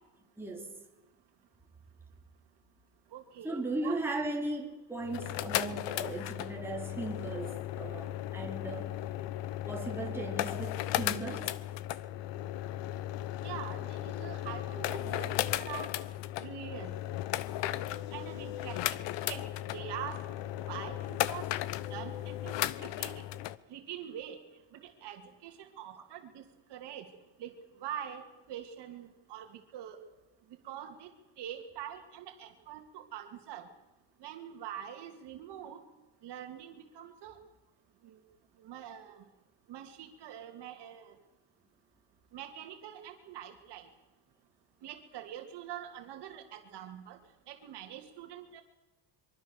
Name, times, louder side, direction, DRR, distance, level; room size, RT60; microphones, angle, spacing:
voice 1, 0.4-0.7 3.4-9.1 9.6-11.6, right 2 dB, 5° right, -1 dB, 3.4 m, -37 dB
voice 2, 3.1-4.0 13.4-15.9 16.4-16.9 18.1-19.5 19.7-20.2 20.7-21.5 21.9-23.2 23.7-24.4 24.7-27.1 27.4-30.0 30.6-31.1 31.4-33.7 34.2-35.8 36.2-37.4 38.0-38.2 38.6-39.2 39.7-41.1 42.3-43.9 44.8-47.2 47.5-48.6, right 10 dB, 60° right, 4 dB, 2.9 m, -44 dB
sound 1, 5.0-23.6, left 14 dB, 65° left, 1.0 m, -36 dB
24.0 x 23.5 x 6.8 m, 1.1 s
cardioid pair, 145°, 47 cm